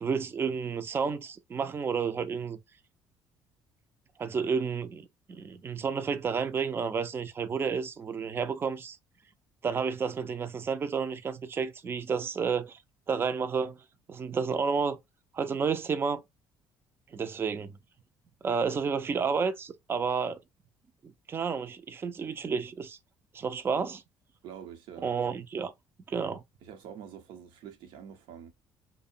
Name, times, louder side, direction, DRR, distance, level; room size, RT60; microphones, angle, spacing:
voice 1, 0.0-2.6 4.2-9.0 9.6-12.8 13.1-13.8 14.1-15.0 15.3-16.2 17.1-17.8 18.4-20.4 21.0-23.0 23.3-24.0 25.0-25.7 26.1-26.4, right 5 dB, 30° right, 0.4 m, -31 dB
voice 2, 24.4-25.1 26.6-28.5, right 8 dB, 80° right, 0.7 m, -46 dB
2.7 x 2.1 x 2.4 m
cardioid pair, 110°, 8 cm